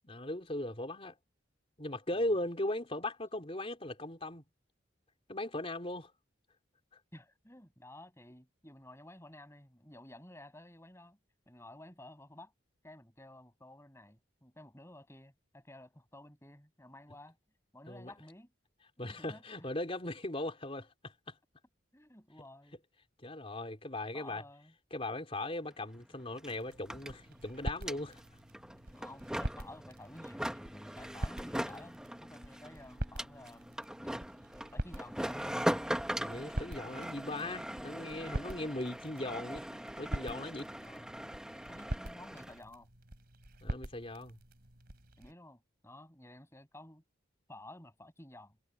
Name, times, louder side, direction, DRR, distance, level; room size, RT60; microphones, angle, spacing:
voice 1, 0.0-1.2 1.8-4.4 5.3-6.1 17.9-18.1 19.0-21.4 23.2-24.4 24.9-28.2 36.2-40.7 43.6-44.4, left 1 dB, 30° left, 3.7 m, -38 dB
voice 2, 7.1-11.2 11.5-12.5 12.8-17.4 17.7-18.5 19.0-19.7 21.9-22.8 24.1-24.7 28.9-33.8 34.7-35.4 40.8-41.3 41.7-42.9 45.2-47.0 47.5-48.6, left 1 dB, 15° left, 7.9 m, -53 dB
sound 1, 25.7-25.8 26.0-42.6, equal, 5° right, 0.9 m, -40 dB
sound 2, 26.5-45.3, equal, 55° right, 3.7 m, -44 dB
head